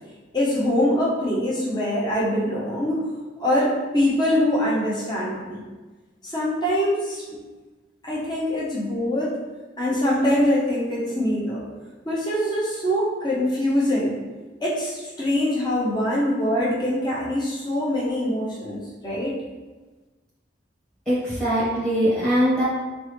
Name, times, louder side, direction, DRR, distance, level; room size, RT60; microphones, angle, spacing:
voice 1, 0.3-3.1 3.4-5.6 6.2-7.4 8.0-9.4 9.8-11.6 12.0-14.2 14.6-19.4, left 1 dB, 20° left, -6 dB, 0.8 m, -23 dB
voice 2, 21.1-22.6, equal, 5° left, -9 dB, 1.5 m, -21 dB
3.9 x 3.5 x 3.3 m, 1.2 s
head